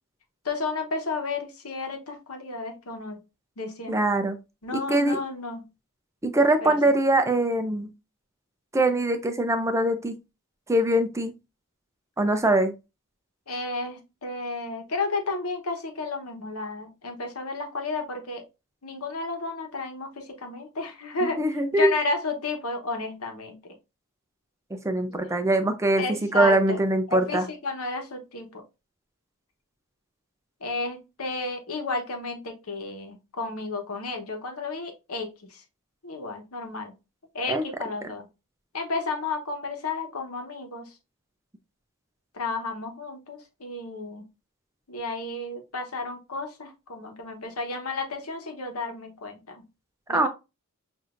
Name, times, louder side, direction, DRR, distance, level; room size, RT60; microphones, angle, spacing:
voice 1, 0.4-3.2 3.6-4.0 4.6-5.7 6.6-7.0 13.5-18.4 18.8-21.4 21.7-23.6 25.1-25.2 26.0-26.8 27.1-28.6 30.6-35.6 36.0-36.9 37.3-38.3 38.7-40.9 42.3-44.3 44.9-49.6 50.1-50.3, left 3 dB, 80° left, 1.0 m, -32 dB
voice 2, 3.9-4.4 4.7-5.2 6.2-7.9 8.7-10.2 10.7-11.3 12.2-12.7 21.2-21.9 24.8-26.0 26.3-27.5 37.5-37.6 50.1-50.3, right 1 dB, 15° right, 0.5 m, -22 dB
5.9 x 2.6 x 2.5 m
head